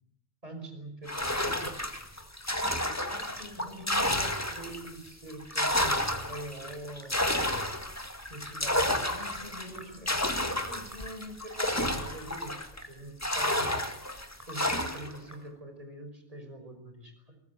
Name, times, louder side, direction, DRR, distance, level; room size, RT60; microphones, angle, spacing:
voice 1, 0.4-2.0 3.1-7.2 8.2-17.4, right 1 dB, 30° right, 6 dB, 5.6 m, -44 dB
sound 1, 1.1-4.9 5.3-12.8 13.2-15.2, left 1 dB, 15° left, 2.0 m, -31 dB
Sink (filling or washing) / Drip, 1.4-15.8, right 1 dB, 15° right, 5.9 m, -56 dB
23.5 x 19.5 x 9.4 m, 0.74 s
omnidirectional pair, 1.2 m